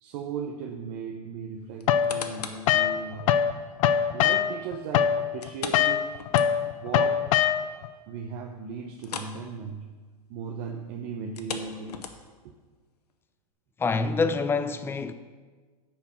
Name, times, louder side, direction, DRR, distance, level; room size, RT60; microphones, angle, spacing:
voice 1, 0.0-3.4 4.1-6.1 6.6-7.3 8.1-9.9 10.3-12.0 12.4-12.5, right 6 dB, 45° right, 0.8 m, -37 dB
sound 1, 1.8-2.7 3.2-3.3 5.4-6.9 7.2-7.3 7.7-7.8 9.0-9.4 9.7-9.9 11.2-12.5 13.1-13.2, left 6 dB, 80° left, 0.9 m, -38 dB
sound 2, 1.9-3.5 3.8-7.9, left 9 dB, 55° left, 0.6 m, -23 dB
voice 2, 13.8-15.1, left 4 dB, 10° left, 0.4 m, -26 dB
9.5 x 4.7 x 6.1 m
hypercardioid pair, 110°, 20 cm